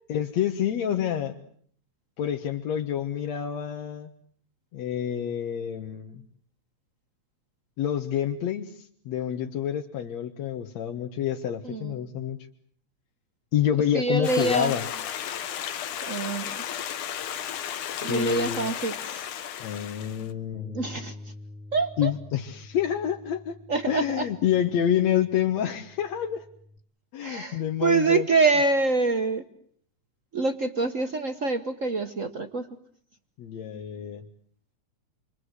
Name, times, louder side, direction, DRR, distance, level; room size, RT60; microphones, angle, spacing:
voice 1, 0.1-1.4 2.2-4.1 4.7-6.2 7.8-12.4 13.5-14.9 18.1-18.7 19.6-20.8 22.0-23.6 23.9-26.5 27.1-28.3 33.4-34.3, left 9 dB, 65° left, 4 dB, 2.4 m, -28 dB
voice 2, 13.9-14.7 16.0-16.6 18.0-19.3 20.7-21.3 21.7-22.1 23.7-24.3 27.2-29.4 30.3-32.7, right 3 dB, 60° right, 9 dB, 0.8 m, -26 dB
Stream, 14.2-20.3, left 9 dB, 80° left, 2.8 m, -34 dB
Bass guitar, 20.5-26.8, left 2 dB, 30° left, 2.3 m, -46 dB
29.5 x 23.5 x 8.2 m, 0.62 s
omnidirectional pair, 3.5 m